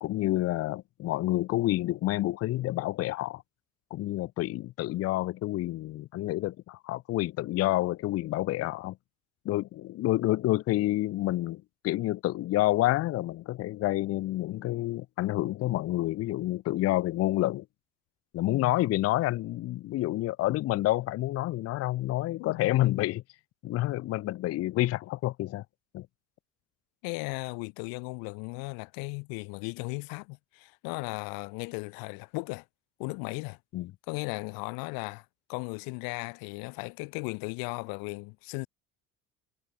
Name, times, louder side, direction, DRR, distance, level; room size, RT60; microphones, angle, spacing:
voice 1, 0.0-3.4 3.9-9.0 9.5-17.6 18.3-23.2 23.6-25.6 25.9-26.1 33.7-33.9, left 16 dB, 45° left, 0.5 m, -28 dB
voice 2, 22.4-22.8 27.0-32.6 33.0-33.6 34.1-35.2 35.5-38.7, left 31 dB, 85° left, 0.7 m, -36 dB
cardioid pair, 115°, 34 cm